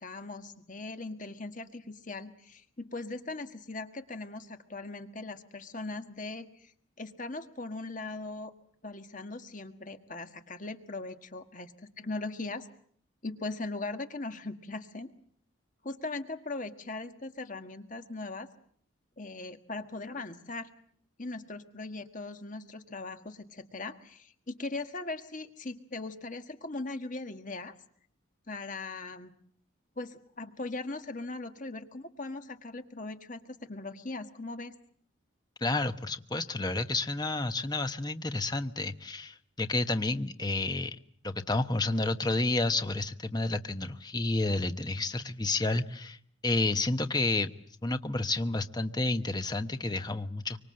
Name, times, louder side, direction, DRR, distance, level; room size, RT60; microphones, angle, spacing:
voice 1, 0.0-6.7 7.0-8.5 8.8-12.7 13.2-15.1 15.8-18.5 19.2-20.7 21.2-27.7 28.5-29.3 30.0-34.8, left 3 dB, 40° left, 7 dB, 1.6 m, -39 dB
voice 2, 35.6-41.0 41.2-46.2 46.4-47.5 47.8-50.6, left 2 dB, 20° left, 9 dB, 1.1 m, -30 dB
25.0 x 25.0 x 7.7 m, 0.62 s
head